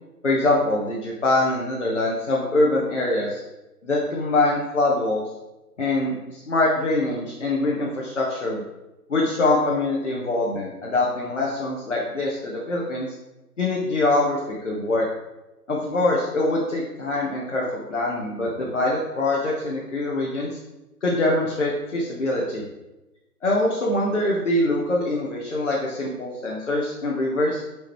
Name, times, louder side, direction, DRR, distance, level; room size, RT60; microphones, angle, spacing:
voice 1, 0.2-3.4 3.8-5.2 5.8-8.6 9.1-13.1 13.6-15.1 15.7-20.6 21.0-22.6 23.4-27.6, left 2 dB, 45° left, -4 dB, 1.1 m, -24 dB
7.6 x 5.0 x 3.1 m, 1.0 s
figure-of-eight pair, 150°, 49 cm